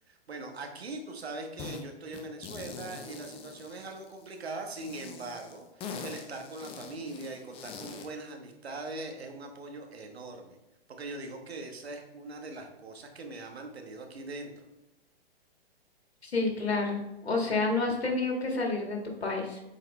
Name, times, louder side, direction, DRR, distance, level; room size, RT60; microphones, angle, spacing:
voice 1, 0.1-10.6 10.9-14.6, right 2 dB, 85° right, 3 dB, 1.3 m, -41 dB
sound 1, 1.6-1.8 2.1-4.3 4.8-8.1, left 5 dB, 20° left, 0.6 m, -43 dB
voice 2, 16.2-19.6, left 3 dB, 85° left, 1 dB, 1.8 m, -29 dB
7.6 x 4.2 x 3.2 m, 0.97 s
hypercardioid pair, 125°, 31 cm